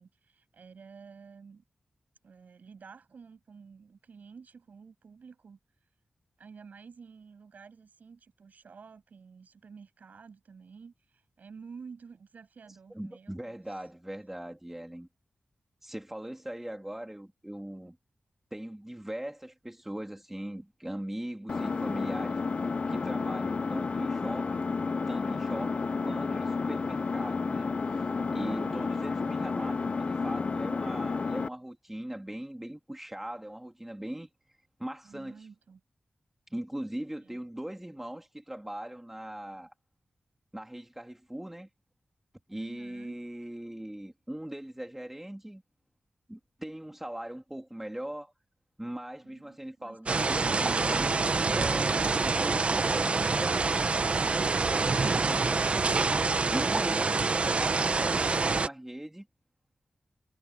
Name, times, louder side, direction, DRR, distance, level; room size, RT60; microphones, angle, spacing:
voice 1, 0.0-1.6 2.2-5.9 6.4-13.8 28.4-29.1 35.0-35.8 37.2-37.4 42.5-43.2 49.2-51.3, right 5 dB, 70° right, 6.9 m, -50 dB
voice 2, 12.9-15.1 15.8-18.0 18.5-22.4 22.9-24.7 25.1-27.7 27.9-28.1 28.3-34.3 34.8-35.5 36.5-39.7 40.5-41.7 42.5-45.6 46.3-48.3 48.8-51.2 51.5-53.7 54.7-55.7 56.4-59.3, right 1 dB, 10° right, 3.0 m, -40 dB
Engine, 21.5-31.5, left 4 dB, 45° left, 0.5 m, -31 dB
sound 1, 50.1-58.7, right 4 dB, 45° right, 0.9 m, -26 dB
wide cardioid pair, 115°, 3 cm